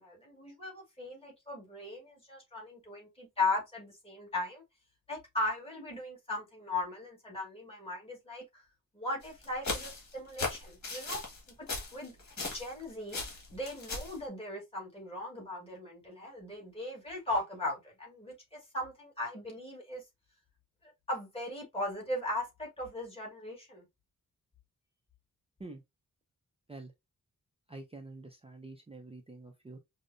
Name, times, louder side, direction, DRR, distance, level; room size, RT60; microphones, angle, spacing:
voice 1, 0.0-4.6 5.1-8.4 8.9-11.2 11.9-12.1 12.5-13.2 13.5-20.0 21.1-23.8, left 2 dB, 15° left, 1.5 m, -38 dB
sound 1, 9.2-12.8 13.1-14.2, left 3 dB, 60° left, 1.5 m, -37 dB
voice 2, 27.7-29.8, right 2 dB, 20° right, 0.4 m, -47 dB
5.2 x 2.0 x 2.6 m
wide cardioid pair, 180°, 32 cm